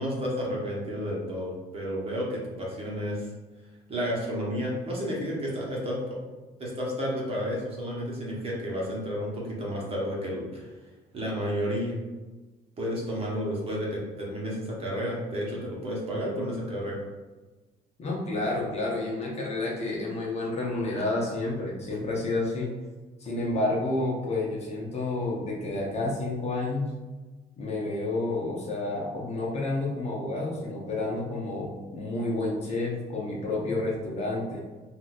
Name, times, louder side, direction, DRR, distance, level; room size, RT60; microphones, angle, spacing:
voice 1, 0.0-3.3 3.9-6.2 6.6-10.7 11.1-12.0 12.8-17.0, equal, 35° right, -4 dB, 1.1 m, -31 dB
voice 2, 18.0-22.7 23.2-26.9 27.6-34.6, left 2 dB, 40° left, -2 dB, 0.8 m, -30 dB
3.8 x 2.6 x 2.4 m, 1.2 s
cardioid pair, 110°, 17 cm